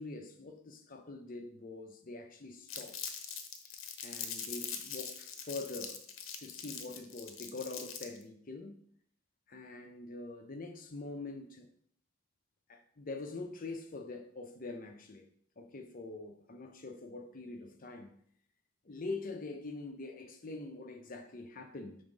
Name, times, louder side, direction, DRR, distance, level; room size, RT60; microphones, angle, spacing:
voice 1, 0.0-3.1 4.0-6.0 6.4-8.8 9.5-11.7 12.7-15.3 15.6-18.1 18.8-22.0, left 3 dB, 45° left, 0.7 m, -44 dB
Crumpling crinkling, 2.7-8.2, left 7 dB, 80° left, 0.8 m, -42 dB
5.7 x 3.5 x 5.2 m
head